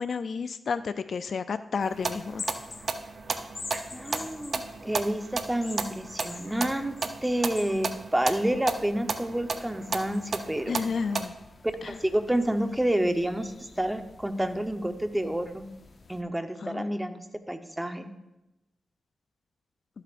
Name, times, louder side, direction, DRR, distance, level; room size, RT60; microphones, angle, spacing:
voice 1, 0.0-2.5 10.7-11.3 11.8-12.0 16.6-17.0, left 5 dB, 65° left, 12 dB, 0.4 m, -31 dB
sound 1, 1.8-11.3, right 4 dB, 55° right, 0.7 m, -34 dB
sound 2, 1.9-16.2, left 3 dB, 50° left, 0.7 m, -47 dB
voice 2, 3.9-6.9 7.2-10.8 11.9-13.5 13.8-15.6 16.1-17.2 17.5-18.1, right 1 dB, 10° right, 8 dB, 0.9 m, -29 dB
12.5 x 8.1 x 2.5 m, 0.94 s
cardioid pair, 50°, 0 cm